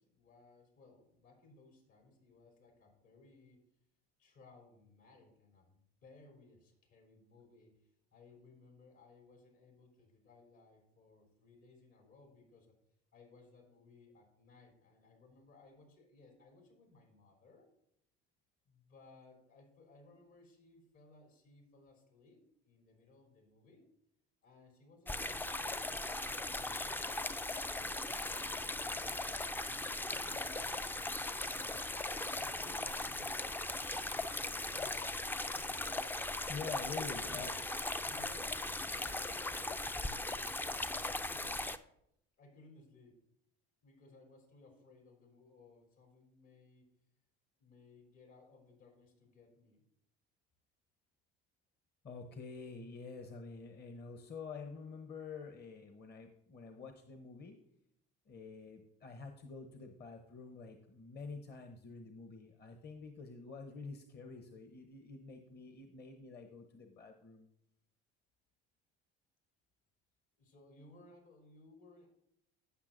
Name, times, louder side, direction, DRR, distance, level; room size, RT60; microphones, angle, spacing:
voice 1, 0.0-3.7 4.2-12.8 13.1-17.7 18.6-23.9 24.4-27.3 27.7-29.2 29.6-30.8 31.4-31.8 32.3-33.4 34.3-35.7 36.8-37.6 38.0-41.7 42.4-43.2 43.8-46.9 47.6-49.8 70.4-72.1, left 2 dB, 70° left, 1 dB, 3.4 m, -61 dB
sound 1, 25.1-41.8, left 2 dB, 5° left, 0.3 m, -38 dB
voice 2, 36.5-37.6 52.0-57.6 58.3-67.5, left 4 dB, 35° left, 5 dB, 0.9 m, -48 dB
15.0 x 5.8 x 2.6 m, 0.76 s
hypercardioid pair, 70°, 29 cm